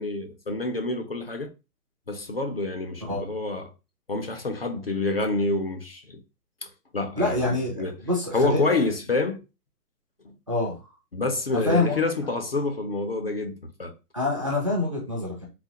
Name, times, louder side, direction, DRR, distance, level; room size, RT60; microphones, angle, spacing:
voice 1, 0.0-1.5 2.1-3.7 4.1-6.2 6.6-8.0 8.3-9.4 10.2-10.3 11.1-13.9, left 3 dB, 40° left, 0.5 m, -28 dB
voice 2, 7.1-8.7 10.5-10.8 11.5-12.0 14.1-15.5, left 2 dB, 20° right, 0.5 m, -26 dB
3.9 x 2.5 x 2.8 m
hypercardioid pair, 165°, 48 cm